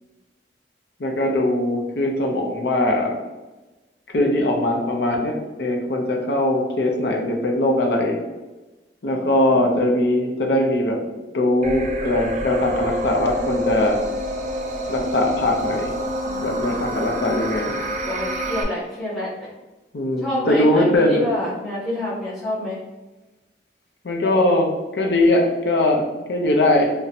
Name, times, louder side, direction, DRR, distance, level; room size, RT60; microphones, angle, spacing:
voice 1, 1.0-3.2 4.1-8.2 9.0-11.0 11.3-14.0 14.9-15.9 16.4-17.7 19.9-21.2 24.0-26.9, left 1 dB, 65° left, 2 dB, 0.6 m, -21 dB
voice 2, 9.0-9.6 16.2-17.1 18.0-19.5 20.2-22.8, left 1 dB, ahead, -10 dB, 0.6 m, -29 dB
sound 1, 11.6-18.6, equal, 40° right, 0.4 m, -27 dB
2.7 x 2.1 x 4.0 m, 1.1 s
head